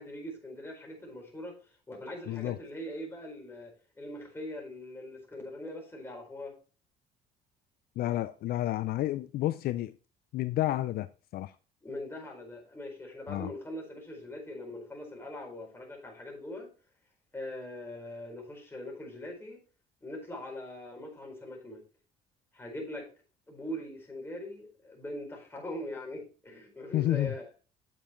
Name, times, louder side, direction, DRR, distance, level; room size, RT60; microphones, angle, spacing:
voice 1, 0.0-1.6 1.9-6.5 11.8-16.7 17.3-19.6 20.0-21.8 22.5-23.1 23.5-27.5, left 1 dB, 15° left, 4.6 m, -41 dB
voice 2, 2.3-2.6 8.0-9.9 10.3-11.5 13.3-13.5 26.9-27.3, left 14 dB, 65° left, 0.4 m, -30 dB
9.1 x 7.3 x 3.1 m
cardioid pair, 110°, 17 cm